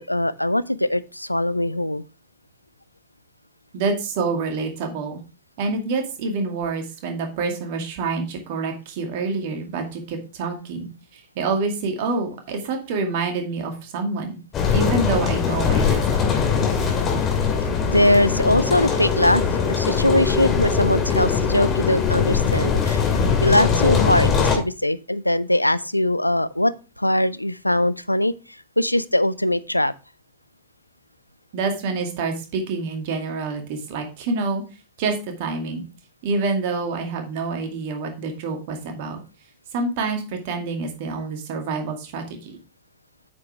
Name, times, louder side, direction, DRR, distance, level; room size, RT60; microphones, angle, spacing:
voice 1, 0.0-2.0 17.9-23.0 23.4-26.7 27.0-28.3 28.8-29.9, left 1 dB, 85° left, 0.4 m, -21 dB
voice 2, 3.7-5.2 5.6-14.4 14.7-16.2 31.5-34.6 35.0-35.8 36.2-39.2 39.7-42.6, right 4 dB, 50° right, 2.2 m, -27 dB
sound 1, 14.5-24.6, left 6 dB, 30° left, 2.6 m, -21 dB
8.7 x 6.8 x 3.3 m
figure-of-eight pair, 90°, 0 cm